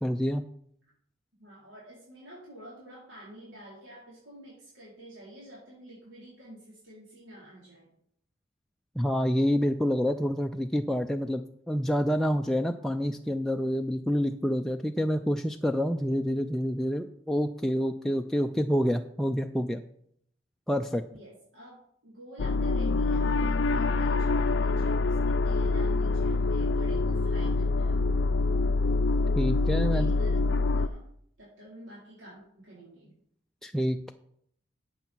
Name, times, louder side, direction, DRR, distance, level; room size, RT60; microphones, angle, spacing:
voice 1, 0.0-0.4 9.0-19.8 20.7-21.0 29.3-30.1 33.6-34.1, equal, ahead, 4 dB, 0.4 m, -27 dB
voice 2, 1.4-7.9 21.1-28.0 29.7-31.0 31.4-33.1, right 1 dB, 75° right, -6 dB, 4.3 m, -49 dB
sound 1, 22.4-30.9, left 3 dB, 65° left, 0.4 m, -25 dB
11.5 x 8.1 x 4.5 m, 0.68 s
head